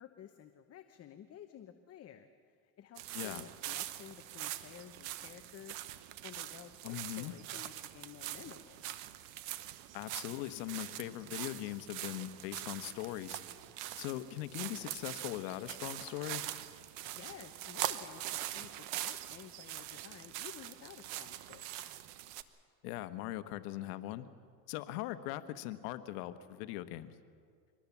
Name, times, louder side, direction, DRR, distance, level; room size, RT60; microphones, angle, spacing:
voice 1, 0.0-2.3 2.6-5.8 6.2-8.9 17.1-18.7 19.0-21.7, left 10 dB, 35° left, 7 dB, 1.0 m, -53 dB
sound 1, 3.0-22.4, right 14 dB, 70° right, 1.2 m, -43 dB
voice 2, 3.1-3.4 6.8-7.3 9.9-13.4 14.0-16.5 22.8-24.3 24.7-27.1, left 15 dB, 80° left, 11 dB, 1.3 m, -40 dB
24.0 x 19.5 x 7.3 m, 2.2 s
supercardioid pair, 120°, 45 cm